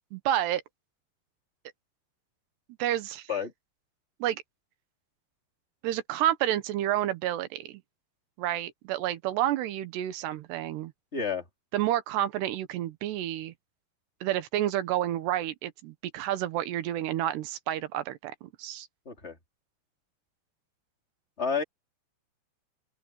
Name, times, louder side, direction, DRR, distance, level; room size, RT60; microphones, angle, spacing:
voice 1, 0.1-0.6 2.8-3.3 4.2-4.4 5.8-7.8 8.4-10.9 11.7-13.5 14.2-18.9, right 12 dB, 75° right, 3.2 m, -30 dB
voice 2, 11.1-11.4 19.0-19.4 21.4-21.6, left 5 dB, 15° left, 2.9 m, -30 dB
open air
omnidirectional pair, 5.0 m